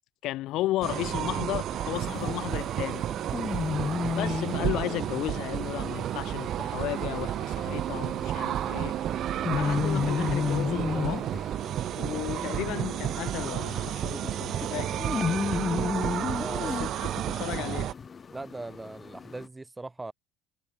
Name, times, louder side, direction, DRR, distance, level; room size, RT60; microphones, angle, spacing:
voice 1, 0.2-3.0 4.2-9.0 9.5-11.3 11.9-15.0 16.6-17.9, left 16 dB, 55° left, 0.7 m, -34 dB
sound 1, 0.8-17.9, right 11 dB, 40° right, 0.6 m, -31 dB
sound 2, 1.9-19.5, left 6 dB, 25° left, 0.6 m, -34 dB
voice 2, 16.4-16.7 18.3-20.1, right 2 dB, 10° right, 1.5 m, -40 dB
cardioid pair, 150°, 0 cm